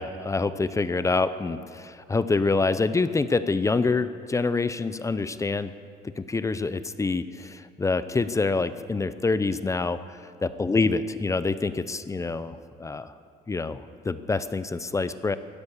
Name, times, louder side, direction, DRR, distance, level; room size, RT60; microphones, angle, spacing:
voice 1, 0.0-5.7 6.2-10.0 10.4-13.1 13.5-15.4, left 3 dB, 20° left, 13 dB, 0.6 m, -26 dB
15.0 x 10.5 x 8.4 m, 2.2 s
cardioid pair, 110°, 17 cm